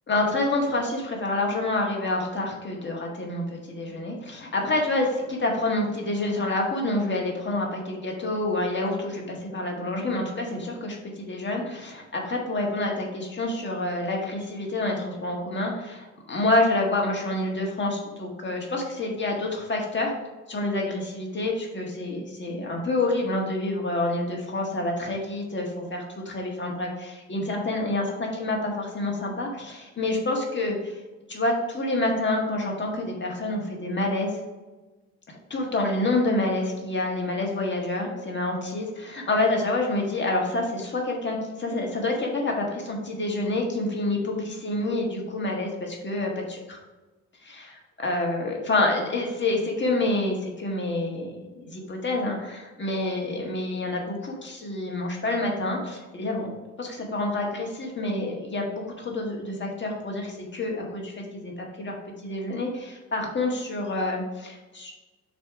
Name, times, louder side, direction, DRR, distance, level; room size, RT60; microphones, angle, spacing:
voice 1, 0.1-20.1 20.5-30.9 31.3-34.4 35.5-46.8 47.4-56.5 56.8-61.5 61.8-62.0 62.2-64.9, left 2 dB, 40° left, 0 dB, 1.6 m, -28 dB
5.8 x 3.4 x 4.8 m, 1.2 s
cardioid pair, 90°, 30 cm